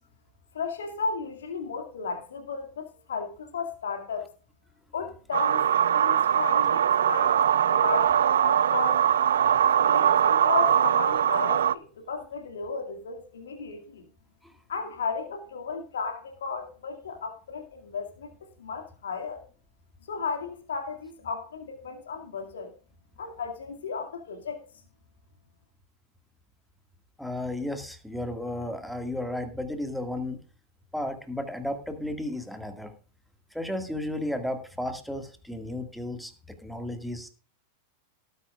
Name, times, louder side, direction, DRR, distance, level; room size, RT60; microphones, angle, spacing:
voice 1, 0.5-4.3 4.9-5.6 5.9-9.0 9.9-14.1 14.7-19.4 20.1-22.7 23.2-24.6, left 5 dB, 65° left, 4 dB, 2.2 m, -34 dB
sound 1, 5.3-11.7, right 9 dB, 65° right, 0.5 m, -22 dB
voice 2, 27.2-30.4 30.9-32.9 33.5-37.3, left 1 dB, ahead, 6 dB, 1.9 m, -33 dB
18.5 x 9.4 x 2.4 m, 0.37 s
figure-of-eight pair, 90°, 0 cm